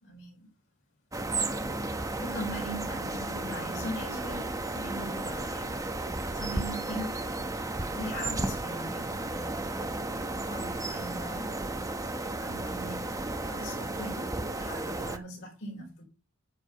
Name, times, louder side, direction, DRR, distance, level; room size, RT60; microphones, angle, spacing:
voice 1, 0.0-0.5 2.2-5.8 6.3-7.1 7.9-9.6 10.4-11.5 12.4-13.0 13.4-16.0, equal, 65° left, 4.1 m, -40 dB
sound 1, 1.1-15.2, right 2 dB, 15° right, 0.9 m, -33 dB
10.0 x 4.9 x 6.6 m
head